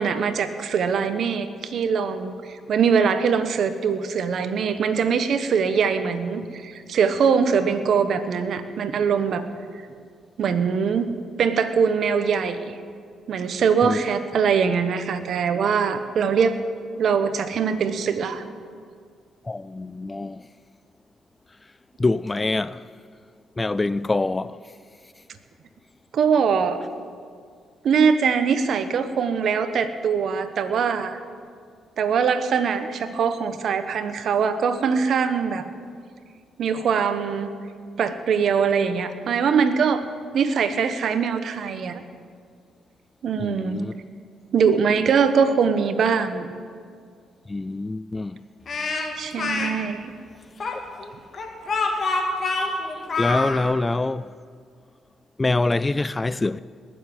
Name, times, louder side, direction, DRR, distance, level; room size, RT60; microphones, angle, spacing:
voice 1, 0.0-9.4 10.4-12.7 13.3-16.6 17.0-18.4 26.1-26.8 27.8-31.2 32.0-35.6 36.6-37.5 38.0-40.0 40.3-42.0 43.2-43.9 44.5-46.5 49.2-50.1, right 6 dB, 60° right, 1.2 m, -22 dB
voice 2, 19.4-20.5 22.0-22.9 23.6-24.6 43.4-43.9 47.5-48.4 53.2-54.3 55.4-56.6, left 2 dB, 20° left, 0.3 m, -25 dB
Speech, 48.7-49.7 50.6-53.6, left 3 dB, 45° left, 2.1 m, -26 dB
19.5 x 7.4 x 9.4 m
cardioid pair, 90°, 0 cm